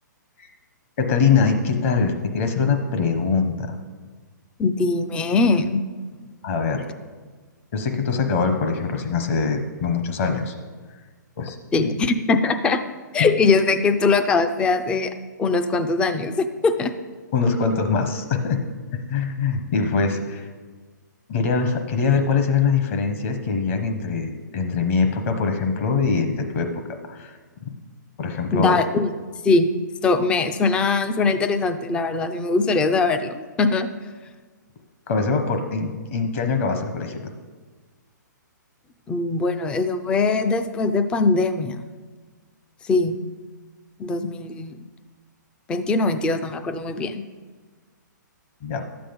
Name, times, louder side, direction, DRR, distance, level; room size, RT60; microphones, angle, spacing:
voice 1, 1.0-3.8 6.4-6.8 7.7-10.6 11.4-11.9 13.2-13.3 17.3-18.6 18.9-20.4 21.3-26.7 27.1-27.3 27.6-27.7 28.2-28.8 35.1-37.3 48.6-48.8, left 5 dB, 40° left, 6 dB, 1.0 m, -23 dB
voice 2, 4.6-5.8 11.7-12.8 13.1-15.1 15.4-16.9 28.5-29.1 29.4-29.7 30.0-33.9 39.1-41.8 42.8-43.2 44.0-44.8 45.7-47.2, left 3 dB, 10° left, 9 dB, 0.4 m, -21 dB
11.0 x 7.6 x 5.2 m, 1.4 s
hypercardioid pair, 155°, 10 cm